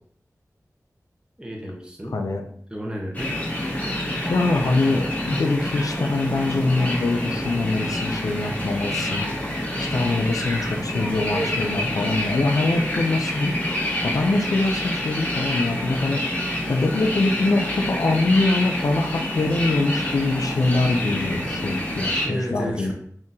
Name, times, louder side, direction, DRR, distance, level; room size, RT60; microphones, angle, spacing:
voice 1, 1.4-2.2 2.7-3.4 22.2-22.9, equal, 15° right, 0 dB, 0.8 m, -32 dB
sound 1, 3.1-22.3, left 1 dB, 25° left, 0.9 m, -27 dB
voice 2, 4.3-9.3 9.8-13.5 14.0-16.3 16.7-22.9, left 2 dB, 75° left, 4 dB, 0.4 m, -23 dB
3.6 x 2.7 x 2.6 m, 0.63 s
wide cardioid pair, 50°, 6 cm